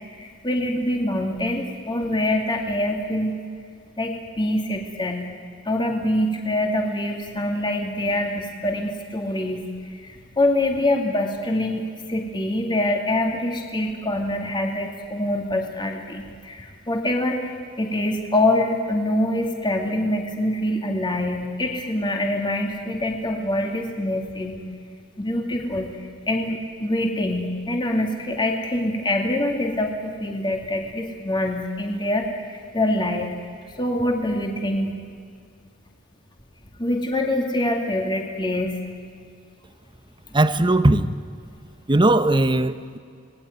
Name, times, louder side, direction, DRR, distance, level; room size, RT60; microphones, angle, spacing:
voice 1, 0.2-3.3 4.0-5.3 5.6-11.8 12.1-24.6 25.2-33.3 33.6-34.9 36.8-38.8 40.3-40.4, left 1 dB, 25° left, 2 dB, 2.4 m, -25 dB
voice 2, 40.3-41.1 41.9-43.0, right 2 dB, 25° right, 12 dB, 0.9 m, -18 dB
26.5 x 19.5 x 9.4 m, 2.2 s
head